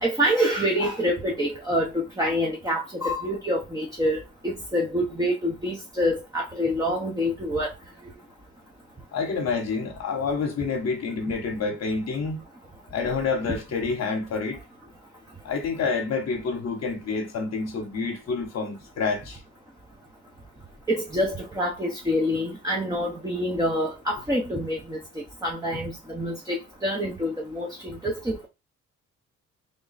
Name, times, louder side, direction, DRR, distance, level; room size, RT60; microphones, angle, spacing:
voice 1, 0.0-7.7 20.9-25.0 25.4-26.6 26.8-28.5, equal, 10° right, 0.9 m, -26 dB
voice 2, 9.1-12.4 12.9-14.6 15.4-19.4, left 4 dB, 60° left, 1.0 m, -28 dB
3.5 x 2.3 x 4.0 m
cardioid pair, 90°, 30 cm